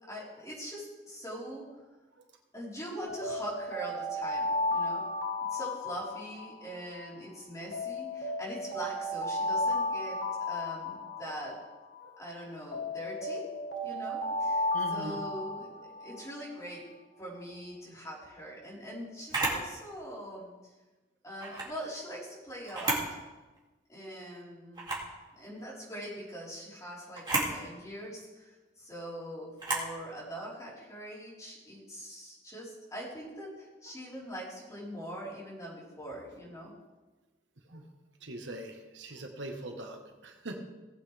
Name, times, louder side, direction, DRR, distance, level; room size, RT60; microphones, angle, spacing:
voice 1, 0.1-1.6 2.5-5.0 5.5-10.2 10.5-11.6 12.2-13.5 13.8-15.7 16.0-16.8 17.2-20.5 21.2-23.0 23.9-24.9 25.3-36.7, equal, 15° left, -7 dB, 4.2 m, -42 dB
Alarm, 3.0-7.2 7.7-12.2 12.7-16.5, left 2 dB, 60° left, 1.6 m, -34 dB
voice 2, 14.7-15.2 15.7-15.9 33.9-34.0 37.6-37.9 38.2-40.6, right 1 dB, 80° right, 3 dB, 1.4 m, -43 dB
Camera, 19.3-19.6 21.4-21.7 22.6-23.1 23.6-23.7 24.7-25.1 27.1-27.5 29.6-29.9, right 2 dB, 25° right, 2.6 m, -31 dB
18.5 x 8.1 x 3.4 m, 1.2 s
head